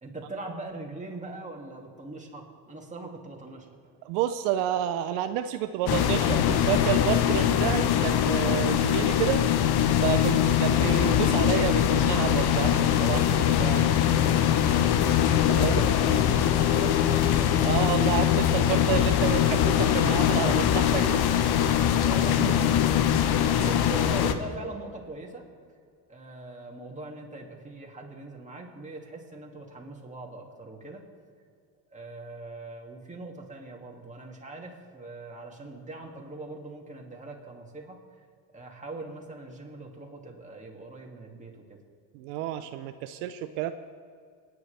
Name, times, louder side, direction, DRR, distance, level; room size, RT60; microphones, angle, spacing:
voice 1, 0.0-3.7 15.5-18.3 22.0-22.8 23.3-25.4 26.1-31.0 31.9-38.0 38.5-41.6, right 2 dB, 15° right, 0 dB, 2.4 m, -40 dB
voice 2, 4.0-9.4 10.0-14.0 15.1-15.2 15.5-15.7 17.6-21.2 23.6-23.8 42.1-43.7, right 11 dB, 75° right, 9 dB, 0.7 m, -30 dB
sound 1, 5.9-24.3, left 10 dB, 50° left, 1.0 m, -22 dB
28.0 x 9.6 x 3.4 m, 2.2 s
supercardioid pair, 105°, 49 cm